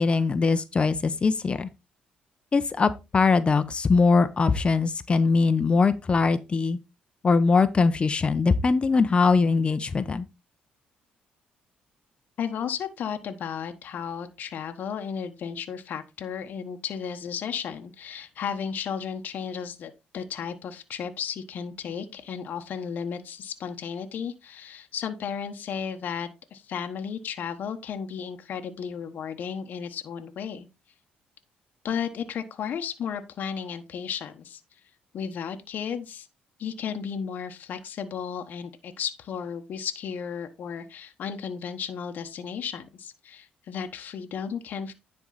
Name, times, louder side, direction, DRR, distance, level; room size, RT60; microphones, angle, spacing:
voice 1, 0.0-1.7 2.5-6.8 7.2-10.2, left 4 dB, 35° left, 0.9 m, -22 dB
voice 2, 12.4-30.7 31.8-34.6 35.1-36.3 36.6-44.9, left 7 dB, 60° left, 1.1 m, -34 dB
10.5 x 4.7 x 4.0 m
cardioid pair, 85°, 3 cm